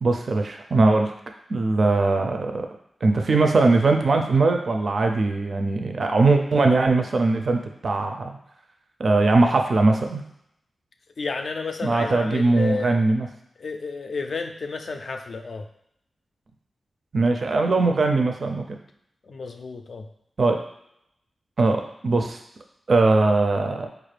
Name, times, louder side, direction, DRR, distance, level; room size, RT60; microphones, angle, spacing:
voice 1, 0.0-1.1 1.5-2.7 3.0-8.3 9.0-10.2 11.8-13.3 17.1-18.8 20.4-20.6 21.6-22.4 22.9-23.9, right 3 dB, 55° right, 4 dB, 0.4 m, -20 dB
voice 2, 11.2-13.0 13.6-15.7 19.2-20.1, left 4 dB, 60° left, 5 dB, 0.3 m, -31 dB
4.5 x 2.4 x 3.2 m, 0.77 s
wide cardioid pair, 95°, 0 cm